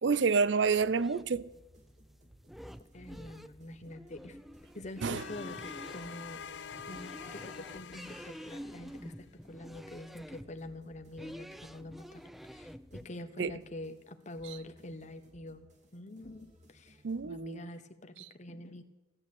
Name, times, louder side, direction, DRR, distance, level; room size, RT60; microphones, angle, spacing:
voice 1, 0.0-1.5 5.0-5.2 13.4-13.6 17.0-17.6, right 5 dB, 75° right, 0.6 m, -28 dB
sound 1, 0.6-13.1, equal, ahead, 0.4 m, -49 dB
sound 2, 0.7-17.3, equal, 40° right, 2.5 m, -63 dB
voice 2, 2.9-4.4 4.7-6.4 6.9-12.2 12.5-12.7 13.0-15.7 15.9-17.0 17.2-18.8, left 1 dB, 40° left, 1.1 m, -46 dB
sound 3, 5.1-9.1, left 6 dB, 70° left, 0.5 m, -45 dB
16.0 x 11.0 x 8.4 m
head